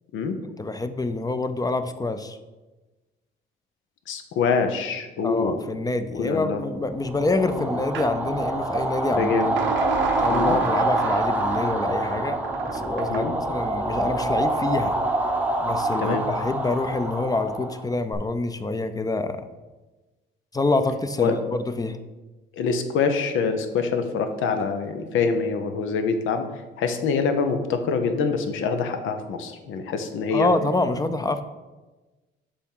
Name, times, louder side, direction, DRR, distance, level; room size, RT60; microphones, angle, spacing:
voice 1, 0.6-2.4 5.2-9.3 10.2-12.4 12.6-14.9 15.6-19.5 20.5-22.0 30.3-31.4, left 2 dB, 20° left, 10 dB, 0.5 m, -26 dB
voice 2, 4.1-5.6 6.1-6.7 9.1-9.6 10.3-10.6 13.1-13.3 16.0-16.2 21.2-21.3 22.6-26.5 26.8-30.5, left 5 dB, 85° left, 8 dB, 0.8 m, -25 dB
sound 1, 7.0-18.1, right 2 dB, 10° right, 0.8 m, -26 dB
sound 2, 7.9-8.1 9.6-13.3, right 7 dB, 70° right, 0.6 m, -31 dB
7.0 x 3.6 x 5.5 m, 1.2 s
cardioid pair, 90°, 20 cm